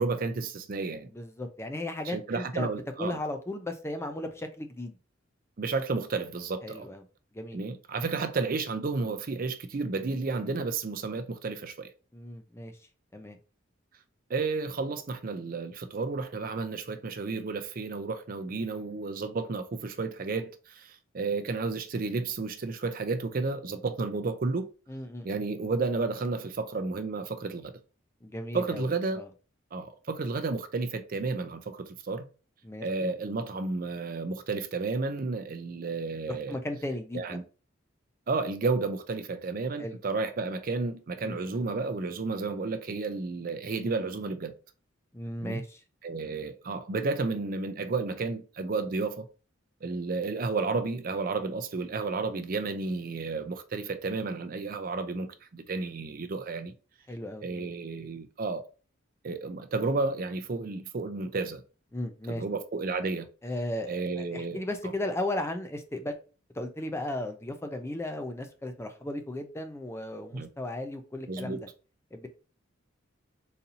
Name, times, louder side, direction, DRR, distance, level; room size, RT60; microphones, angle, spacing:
voice 1, 0.0-1.1 2.0-3.2 5.6-6.9 7.5-11.9 14.3-24.7 25.2-27.7 28.5-29.2 29.7-32.3 32.8-36.6 37.1-37.4 38.3-44.5 45.4-45.6 46.0-49.2 49.8-56.7 57.4-58.6 59.2-61.6 62.3-63.3 63.9-64.6 70.3-70.5 71.3-71.6, right 3 dB, 45° right, 0.5 m, -32 dB
voice 2, 1.1-2.7 3.0-5.0 6.6-7.0 7.3-7.6 12.1-12.7 13.1-13.4 24.9-25.4 28.2-28.9 29.2-29.3 32.6-33.1 36.3-37.4 39.8-40.0 41.2-41.6 45.1-45.8 57.1-57.7 61.9-62.4 63.4-66.2 66.6-71.7 72.1-72.3, left 1 dB, 15° left, 0.4 m, -36 dB
4.0 x 2.7 x 2.7 m
head